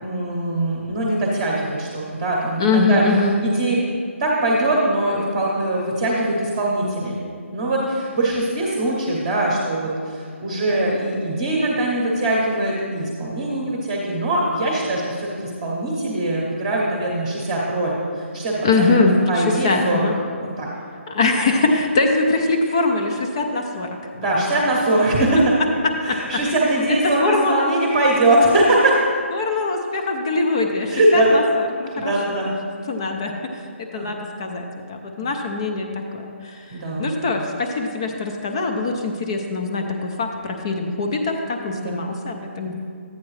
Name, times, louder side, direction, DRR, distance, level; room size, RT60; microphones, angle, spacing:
voice 1, 0.0-3.0 3.4-3.8 4.2-7.2 7.5-18.9 19.3-20.1 20.4-20.7 24.1-25.5 26.0-29.0 30.9-31.4 32.0-32.5 33.9-34.1 35.2-35.3 36.7-37.1 41.7-42.0 42.6-42.7, right 1 dB, 20° right, -3 dB, 0.9 m, -21 dB
voice 2, 2.6-3.4 18.6-20.1 21.1-24.0 25.8-26.2 27.2-27.7 29.3-31.4 31.8-32.1 32.9-42.7, left 3 dB, 25° left, 3 dB, 0.5 m, -22 dB
11.0 x 8.5 x 3.2 m, 2.3 s
hypercardioid pair, 170°, 7 cm